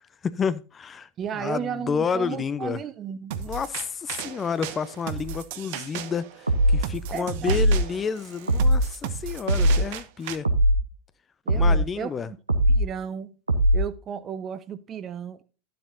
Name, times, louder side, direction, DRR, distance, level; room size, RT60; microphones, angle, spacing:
voice 1, 0.0-2.8 3.3-10.5 11.5-12.3, left 6 dB, 25° left, 0.6 m, -30 dB
voice 2, 1.2-3.3 7.1-7.6 11.5-12.4 12.7-13.3 13.7-15.4, right 8 dB, 30° right, 0.9 m, -34 dB
sound 1, 3.3-10.4, right 8 dB, 55° right, 1.0 m, -36 dB
sound 2, 6.5-6.9 7.5-7.9 8.5-8.9 9.5-9.9 10.4-10.9 11.5-11.9 12.5-12.9 13.5-13.9, right 1 dB, 85° right, 1.0 m, -20 dB
12.0 x 7.8 x 2.6 m
figure-of-eight pair, 85°, 0 cm